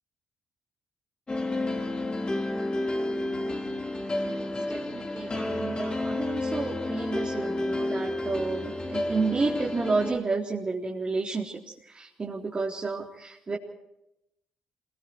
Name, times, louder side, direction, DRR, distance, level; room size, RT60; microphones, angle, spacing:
sound 1, 1.3-10.2, left 1 dB, 30° left, 4.7 m, -30 dB
voice 1, 4.2-11.6 11.9-13.6, right 3 dB, 35° right, -3 dB, 4.1 m, -31 dB
27.5 x 22.5 x 4.8 m, 0.84 s
hypercardioid pair, 50°, 3 cm